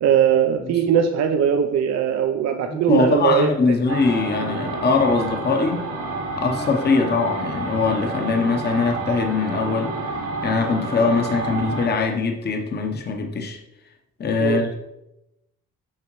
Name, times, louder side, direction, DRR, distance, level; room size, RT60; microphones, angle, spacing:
voice 1, 0.0-3.5 14.4-14.6, right 8 dB, 60° right, 5 dB, 0.6 m, -20 dB
voice 2, 2.7-5.9 6.4-10.0 10.4-13.6 14.2-14.8, left 4 dB, 35° left, 3 dB, 0.8 m, -22 dB
sound 1, 3.9-11.9, right 3 dB, 80° right, 2.0 m, -29 dB
7.5 x 5.0 x 3.0 m, 0.90 s
cardioid pair, 90°, 30 cm